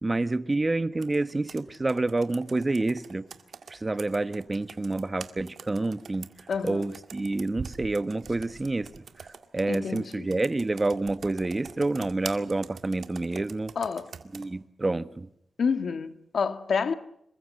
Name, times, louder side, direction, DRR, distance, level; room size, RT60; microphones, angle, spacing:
voice 1, 0.0-3.2 3.7-6.3 6.6-8.9 9.5-13.7 14.3-15.3, right 2 dB, 25° right, 1.1 m, -28 dB
Computer keyboard, 1.0-14.5, right 6 dB, 80° right, 2.0 m, -45 dB
voice 2, 6.5-6.9 9.7-10.3 13.7-14.1 15.6-16.9, left 5 dB, 75° left, 1.8 m, -28 dB
27.5 x 23.5 x 6.5 m
wide cardioid pair, 95°, 0 cm